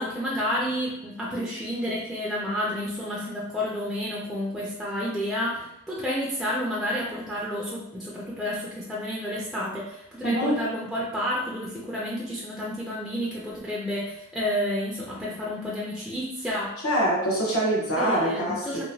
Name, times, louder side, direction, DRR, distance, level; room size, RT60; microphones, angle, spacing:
voice 1, 0.0-16.7 18.0-18.8, equal, ahead, -6 dB, 0.3 m, -30 dB
voice 2, 10.2-10.7 16.8-18.8, right 1 dB, 85° left, -4 dB, 0.9 m, -24 dB
2.8 x 2.1 x 2.7 m, 0.80 s
head